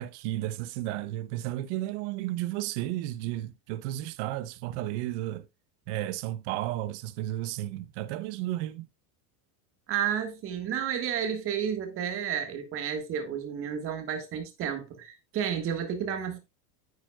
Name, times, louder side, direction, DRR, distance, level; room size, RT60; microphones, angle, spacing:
voice 1, 0.0-5.5 5.9-8.9, right 15 dB, 45° right, 0.7 m, -33 dB
voice 2, 9.9-16.4, right 8 dB, 30° right, 1.6 m, -31 dB
9.5 x 9.0 x 2.3 m
supercardioid pair, 165°, 48 cm